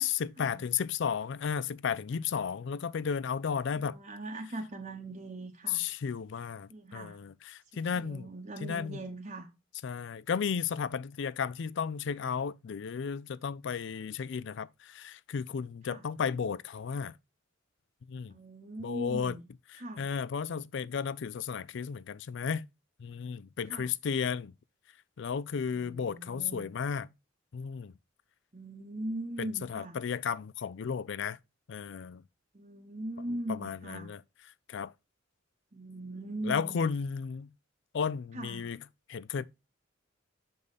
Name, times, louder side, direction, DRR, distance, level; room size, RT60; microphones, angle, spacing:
voice 1, 0.0-4.0 5.7-8.3 8.6-9.0 9.8-17.1 18.1-18.3 18.8-19.4 20.0-22.7 23.0-24.5 25.2-27.1 27.5-27.9 29.4-31.4 31.7-32.2 33.5-34.2 34.7-34.9 36.4-37.5 37.9-38.8 39.1-39.4, left 6 dB, 60° left, 0.4 m, -34 dB
voice 2, 3.7-5.8 6.7-7.2 7.7-9.5 15.8-16.0 18.3-19.4 19.8-20.1 23.7-23.9 25.7-26.7 28.5-30.0 32.5-34.1 35.7-36.8 38.3-38.7, right 1 dB, 35° right, 0.9 m, -40 dB
6.8 x 5.3 x 4.0 m
head